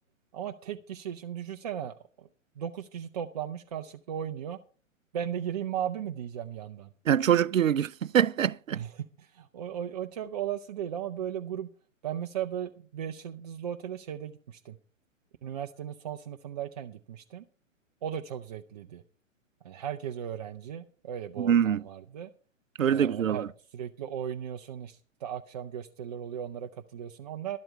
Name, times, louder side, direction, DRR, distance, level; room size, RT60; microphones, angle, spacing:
voice 1, 0.3-2.3 2.6-4.6 5.1-6.9 8.7-11.7 12.0-14.8 15.4-17.4 18.0-19.0 19.6-22.3 22.9-23.5 23.7-27.6, right 9 dB, 30° right, 0.5 m, -36 dB
voice 2, 7.1-8.8 21.4-21.8 22.8-23.5, right 9 dB, 80° right, 0.5 m, -24 dB
12.0 x 12.0 x 4.6 m
figure-of-eight pair, 120°, 39 cm